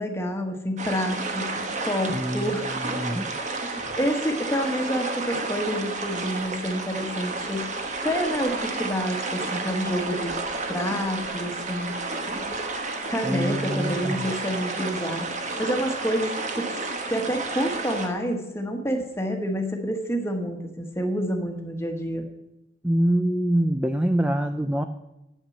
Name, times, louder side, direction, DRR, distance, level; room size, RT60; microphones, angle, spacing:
voice 1, 0.0-1.5 1.8-3.2 3.5-7.7 8.0-10.3 10.7-11.9 13.1-15.3 15.6-16.7 17.1-22.2, equal, 15° left, 4 dB, 1.4 m, -28 dB
sound 1, 0.8-18.1, right 3 dB, 40° right, 1.2 m, -31 dB
voice 2, 2.1-2.5 2.8-3.3 13.2-14.3 22.8-24.8, right 1 dB, 5° right, 7 dB, 0.4 m, -25 dB
8.9 x 8.6 x 7.2 m, 0.93 s
head